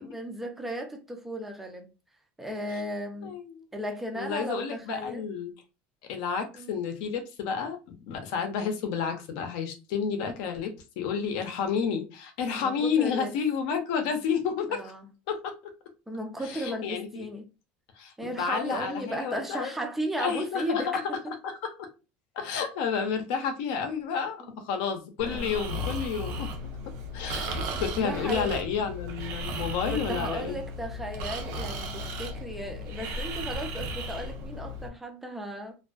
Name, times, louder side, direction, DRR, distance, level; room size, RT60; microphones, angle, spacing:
voice 1, 0.0-1.9 2.4-3.3 3.7-5.2 6.5-6.8 12.6-13.3 14.7-15.1 16.1-17.5 18.2-21.3 24.5-24.6 25.2-25.6 28.0-28.5 29.9-35.8, equal, 5° right, 0.4 m, -35 dB
voice 2, 3.2-3.7 4.1-5.5 6.1-14.9 15.3-15.4 16.4-17.3 18.0-19.7 20.2-21.0 21.4-21.5 22.3-26.5 27.1-30.6, left 6 dB, 70° left, 0.6 m, -30 dB
Breathing, 25.2-34.9, equal, 70° right, 0.5 m, -35 dB
2.5 x 2.4 x 2.3 m
cardioid pair, 175°, 5 cm